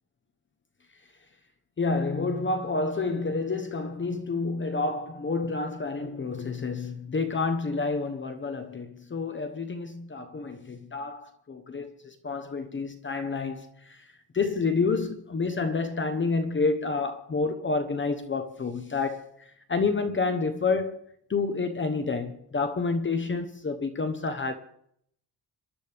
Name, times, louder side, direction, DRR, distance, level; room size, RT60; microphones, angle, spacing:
voice 1, 1.8-21.0 21.3-24.5, left 4 dB, 25° left, 1.0 m, -29 dB
27.0 x 12.0 x 3.5 m
cardioid pair, 130°, 42 cm